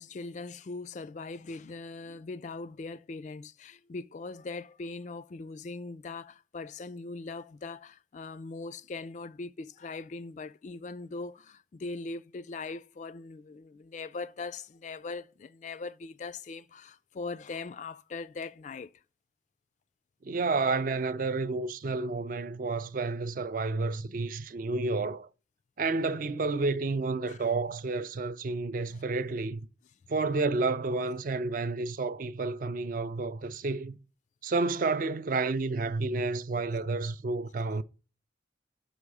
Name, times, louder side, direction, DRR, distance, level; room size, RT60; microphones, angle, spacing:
voice 1, 0.0-19.0 27.3-27.4 28.9-29.0, left 3 dB, 40° left, 0.3 m, -40 dB
voice 2, 20.2-25.3 25.8-29.6 30.1-34.0 34.4-37.8, right 3 dB, 45° right, 0.4 m, -30 dB
6.4 x 5.3 x 4.8 m
head